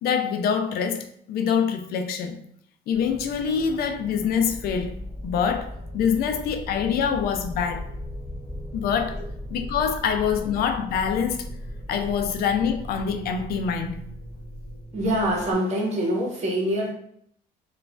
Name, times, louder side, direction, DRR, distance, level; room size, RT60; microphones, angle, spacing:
voice 1, 0.0-2.4 2.9-5.0 5.2-7.8 8.7-9.2 9.5-11.5 11.9-14.0, left 7 dB, 65° left, 6 dB, 0.4 m, -25 dB
sound 1, 2.9-15.5, left 1 dB, 5° left, 1.4 m, -38 dB
voice 2, 14.9-16.9, right 1 dB, 40° right, -2 dB, 1.1 m, -24 dB
3.1 x 2.3 x 2.4 m, 0.68 s
cardioid pair, 110°, 17 cm